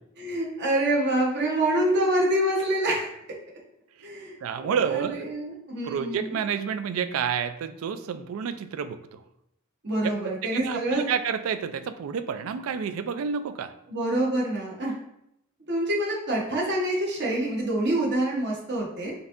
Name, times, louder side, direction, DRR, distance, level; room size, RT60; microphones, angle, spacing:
voice 1, 0.2-3.1 4.0-6.4 9.8-11.0 13.9-14.9 15.7-19.1, right 1 dB, 55° right, -3 dB, 1.0 m, -26 dB
voice 2, 4.4-5.2 5.8-9.2 10.0-13.7, right 7 dB, 85° right, 11 dB, 0.3 m, -29 dB
5.2 x 2.6 x 2.5 m, 0.79 s
head